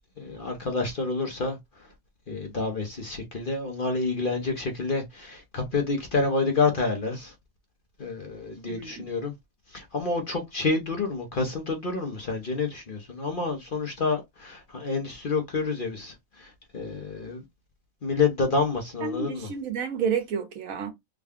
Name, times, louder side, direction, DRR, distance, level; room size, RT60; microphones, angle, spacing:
voice 1, 0.2-1.6 2.3-7.3 8.0-9.3 9.7-17.4 18.0-19.5, left 3 dB, 45° left, 0.8 m, -28 dB
voice 2, 8.7-9.1 19.0-20.9, right 6 dB, 75° right, 1.3 m, -30 dB
3.7 x 2.3 x 3.4 m
omnidirectional pair, 1.5 m